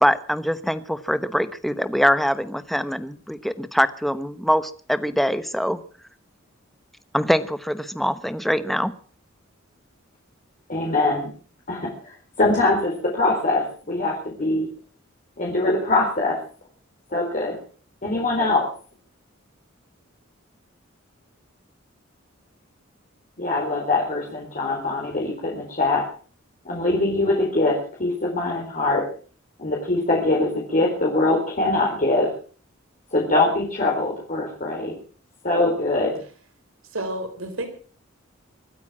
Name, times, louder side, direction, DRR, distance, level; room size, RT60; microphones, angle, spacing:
voice 1, 0.0-5.8 7.1-8.9, equal, ahead, 12 dB, 1.0 m, -23 dB
voice 2, 10.7-11.3 11.7-14.7 15.4-16.4 17.1-17.6 18.0-18.7 23.4-26.0 26.6-29.1 29.6-32.3 33.1-34.9 35.4-36.2, left 2 dB, 40° left, -2 dB, 4.1 m, -23 dB
voice 3, 36.9-37.7, right 1 dB, 85° right, 6 dB, 3.9 m, -30 dB
24.0 x 9.4 x 6.2 m, 0.42 s
head